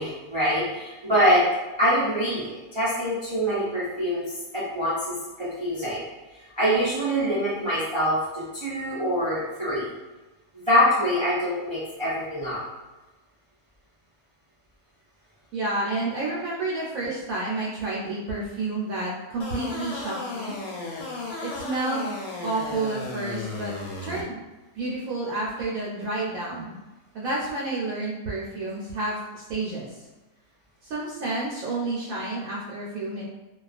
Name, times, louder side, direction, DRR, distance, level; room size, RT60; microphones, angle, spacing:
voice 1, 0.0-1.4 1.8-4.3 4.5-6.0 6.6-9.9 10.7-12.6, equal, 50° right, -10 dB, 0.3 m, -24 dB
voice 2, 15.5-20.5 21.4-22.2 22.4-23.7 24.0-24.4 24.7-26.8 27.1-29.9 30.8-33.2, right 2 dB, 75° right, -5 dB, 1.0 m, -30 dB
sound 1, 19.4-24.2, left 3 dB, 70° left, 0.9 m, -35 dB
2.3 x 2.3 x 2.4 m, 1.1 s
omnidirectional pair, 1.5 m